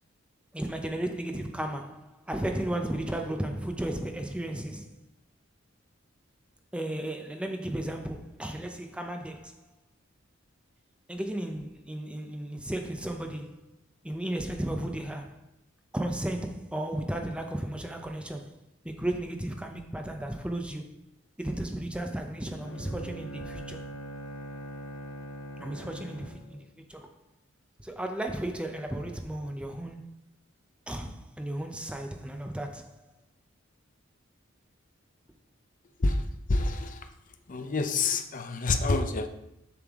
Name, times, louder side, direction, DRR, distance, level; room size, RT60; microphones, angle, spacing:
voice 1, 0.5-4.9 6.7-9.6 11.1-13.6 14.0-15.4 15.9-18.5 18.8-20.9 21.4-23.8 25.6-26.6 26.9-27.1 27.8-30.1 30.9-33.0, right 1 dB, 5° right, 0.5 m, -34 dB
Bowed string instrument, 22.6-26.7, equal, 70° left, 1.0 m, -42 dB
voice 2, 36.0-37.1 37.5-39.3, left 3 dB, 45° left, 0.6 m, -28 dB
7.0 x 6.7 x 3.5 m
head